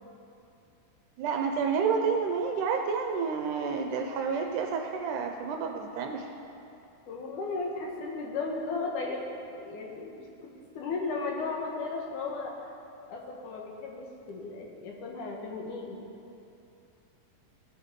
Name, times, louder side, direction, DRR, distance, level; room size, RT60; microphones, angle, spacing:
voice 1, 1.2-6.3, right 5 dB, 75° right, 3 dB, 2.0 m, -29 dB
voice 2, 7.1-12.7 13.1-16.0, left 3 dB, 70° left, -1 dB, 2.4 m, -35 dB
17.0 x 8.3 x 3.7 m, 2.7 s
omnidirectional pair, 4.0 m